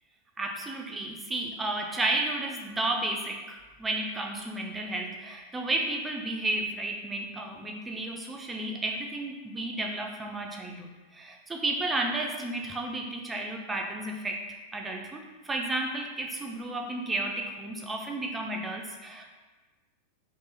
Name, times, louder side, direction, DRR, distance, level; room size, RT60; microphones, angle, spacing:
voice 1, 0.4-14.4 14.7-19.2, right 2 dB, 15° right, 1 dB, 0.5 m, -32 dB
2.8 x 2.7 x 3.6 m, 1.3 s
figure-of-eight pair, 90°, 0 cm